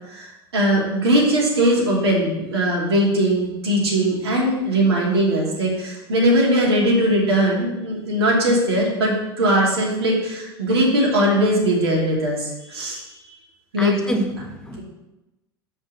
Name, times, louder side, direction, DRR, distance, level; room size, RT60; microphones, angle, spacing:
voice 1, 0.5-13.4 13.7-14.2, right 1 dB, 85° right, -4 dB, 2.7 m, -20 dB
voice 2, 13.8-14.8, equal, 5° left, 2 dB, 1.3 m, -27 dB
6.1 x 5.5 x 6.7 m, 0.97 s
hypercardioid pair, 85°, 13 cm